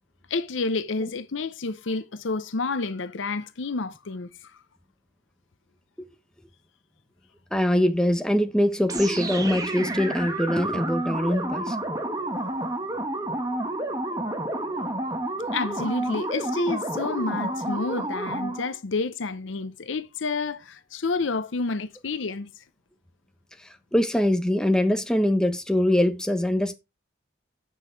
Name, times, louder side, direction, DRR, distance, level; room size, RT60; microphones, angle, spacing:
voice 1, 0.3-4.5 15.5-22.5, left 3 dB, 85° left, 0.7 m, -29 dB
voice 2, 7.5-11.8 23.6-26.7, left 1 dB, 5° left, 0.9 m, -23 dB
sound 1, 8.9-18.7, right 1 dB, 20° right, 1.4 m, -30 dB
8.9 x 6.3 x 4.5 m
head